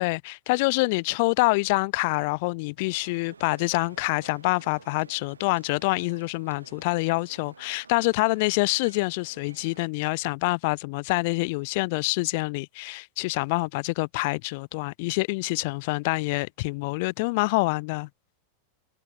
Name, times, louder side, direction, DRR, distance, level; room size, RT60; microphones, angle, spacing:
voice 1, 0.0-18.1, left 26 dB, 50° left, 0.4 m, -26 dB
sound 1, 2.8-9.9, right 5 dB, 75° right, 3.3 m, -52 dB
figure-of-eight pair, 90°, 0 cm